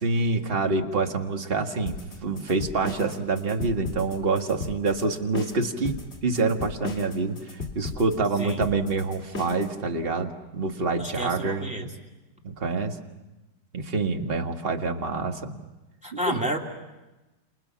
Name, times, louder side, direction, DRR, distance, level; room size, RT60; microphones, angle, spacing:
voice 1, 0.0-11.9 12.4-13.0 13.7-15.6 16.1-16.4, right 3 dB, 30° right, 4 dB, 1.7 m, -27 dB
sound 1, 1.9-9.7, left 3 dB, 35° left, 2.9 m, -36 dB
voice 2, 11.0-11.9 16.0-16.6, right 1 dB, 5° right, 0 dB, 2.6 m, -30 dB
30.0 x 29.0 x 5.8 m, 1.1 s
omnidirectional pair, 2.0 m